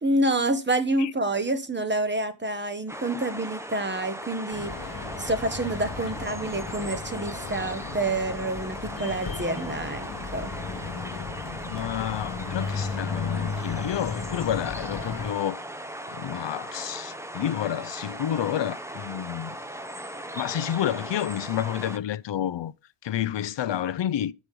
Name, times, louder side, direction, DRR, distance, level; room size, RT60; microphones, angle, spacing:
voice 1, 0.0-10.5, right 2 dB, 20° right, 1.1 m, -28 dB
sound 1, 2.9-22.0, right 1 dB, 5° right, 0.8 m, -38 dB
sound 2, 4.5-15.3, left 5 dB, 45° left, 1.1 m, -35 dB
voice 2, 11.6-15.6 16.1-19.6 20.3-22.7 23.0-24.3, left 11 dB, 60° left, 0.6 m, -29 dB
8.2 x 6.1 x 5.2 m
wide cardioid pair, 130°, 48 cm